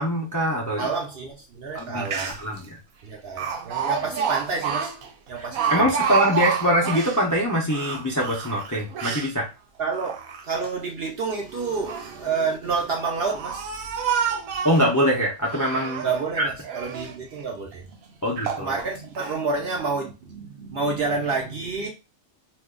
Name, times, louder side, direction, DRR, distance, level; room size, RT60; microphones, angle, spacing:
voice 1, 0.0-0.9 1.7-2.1 2.4-2.6 5.7-9.5 14.6-16.0 16.4-16.5 18.2-18.7, equal, 25° left, 0.4 m, -23 dB
voice 2, 0.8-2.4 3.0-4.9 5.3-6.1 9.8-10.2 10.4-14.7 16.0-21.9, right 4 dB, 55° right, 0.7 m, -29 dB
Speech, 1.8-1.9 2.1-2.6 3.4-7.2 7.7-9.3 9.9-10.7 11.6-12.2 12.9-14.9 15.4-16.3 16.6-17.2 17.7-17.8 18.4-18.7 19.2-19.4, right 6 dB, 80° right, 1.0 m, -29 dB
2.5 x 2.3 x 3.6 m
omnidirectional pair, 1.5 m